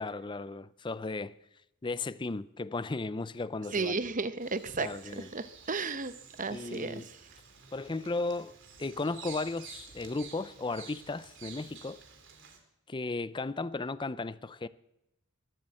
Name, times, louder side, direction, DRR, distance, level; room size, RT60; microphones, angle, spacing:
voice 1, 0.0-1.4 1.8-4.0 4.8-5.3 6.5-7.1 7.7-12.0 12.9-14.7, left 3 dB, 20° left, 0.5 m, -35 dB
voice 2, 3.7-4.9 5.2-6.1 6.4-7.0, right 4 dB, 35° right, 0.9 m, -33 dB
Bird vocalization bird call bird song, 4.4-12.6, right 6 dB, 55° right, 2.9 m, -51 dB
22.5 x 7.8 x 7.6 m
head